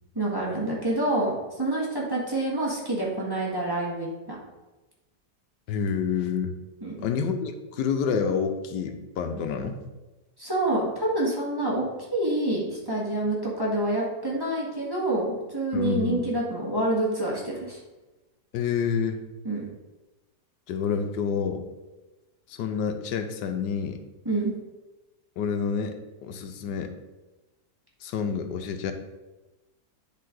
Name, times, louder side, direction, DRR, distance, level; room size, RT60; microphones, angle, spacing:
voice 1, 0.1-4.3 6.8-7.0 10.4-11.9 12.1-17.8 19.4-19.6 24.2-24.5, right 1 dB, 15° right, -5 dB, 1.5 m, -27 dB
voice 2, 5.7-6.6 7.0-9.8 15.7-16.2 18.5-19.2 20.7-21.6 22.5-24.0 25.4-26.9 28.0-28.9, left 6 dB, 90° left, 7 dB, 1.3 m, -28 dB
10.0 x 3.8 x 3.8 m, 1.1 s
omnidirectional pair, 1.8 m